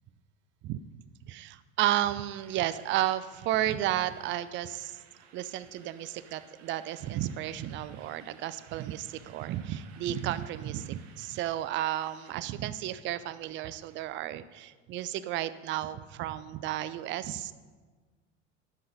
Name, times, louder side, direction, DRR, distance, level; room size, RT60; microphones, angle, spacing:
voice 1, 1.3-5.0 5.3-17.5, right 13 dB, 30° right, 14 dB, 0.4 m, -32 dB
sound 1, 2.3-14.0, right 7 dB, 70° right, 1.1 m, -58 dB
10.5 x 5.5 x 5.1 m, 1.4 s
hypercardioid pair, 95°, 37 cm